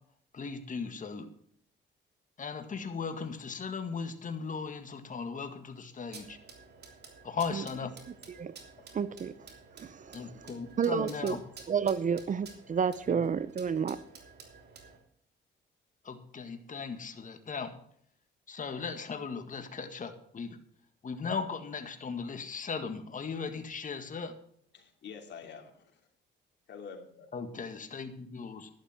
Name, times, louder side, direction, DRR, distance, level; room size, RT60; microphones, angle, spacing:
voice 1, 0.3-1.3 2.4-6.4 7.2-7.9 10.1-11.4 13.1-13.2 16.0-17.7 18.5-20.6 21.0-24.3 27.3-28.7, left 5 dB, 40° left, 7 dB, 1.8 m, -37 dB
sound 1, 6.1-15.0, right 4 dB, 55° right, 3.1 m, -52 dB
voice 2, 8.9-9.3 9.8-10.3 10.8-11.4 11.7-14.0, right 7 dB, 40° right, 17 dB, 0.6 m, -30 dB
voice 3, 11.1-11.4 24.7-26.0 26.7-27.3, left 6 dB, 60° left, 2 dB, 3.0 m, -47 dB
11.5 x 11.5 x 4.4 m, 0.64 s
cardioid pair, 90°, 20 cm